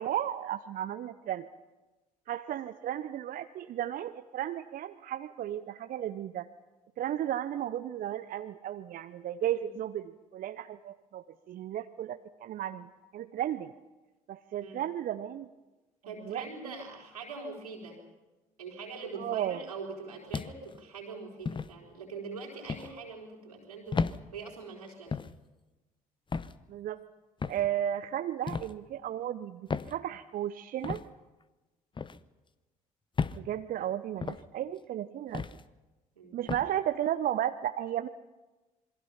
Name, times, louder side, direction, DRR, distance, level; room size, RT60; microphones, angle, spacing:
voice 1, 0.0-1.5 2.3-6.5 7.0-12.9 13.1-13.7 14.3-15.5 16.3-16.5 19.2-19.6 26.7-27.0 27.5-31.0 33.3-35.4 36.3-38.1, right 11 dB, 50° right, 10 dB, 0.8 m, -34 dB
voice 2, 16.1-18.0 18.6-25.2 36.2-36.4, right 4 dB, 85° right, 0 dB, 3.9 m, -43 dB
sound 1, 20.3-20.8 21.5-21.7 22.7-22.9 23.9-24.2 25.1-25.4 26.3-26.6 27.4-27.7 28.5-28.7 29.7-29.9 30.8-31.0 32.0-32.2 33.2-33.4 34.2-34.4 35.3-35.6 36.5-36.7, left 5 dB, 25° left, 0.9 m, -33 dB
27.5 x 22.5 x 5.8 m, 1.1 s
figure-of-eight pair, 50°, 19 cm